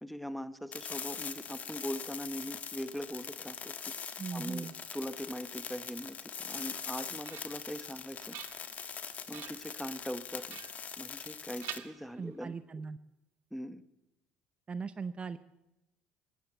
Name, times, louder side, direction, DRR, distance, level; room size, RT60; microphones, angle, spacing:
voice 1, 0.0-3.7 4.3-8.3 9.3-10.6 11.0-12.5 13.5-13.8, equal, ahead, 12 dB, 1.0 m, -41 dB
sound 1, 0.7-11.8, left 7 dB, 45° left, 1.2 m, -42 dB
voice 2, 4.2-4.7 12.2-13.0 14.7-15.4, right 5 dB, 30° right, 12 dB, 0.6 m, -39 dB
sound 2, 6.7-7.7 8.1-8.9 9.3-9.7 10.5-11.3 11.6-12.6, right 13 dB, 70° right, 0.9 m, -47 dB
16.5 x 11.0 x 8.0 m, 0.95 s
supercardioid pair, 80°, 4 cm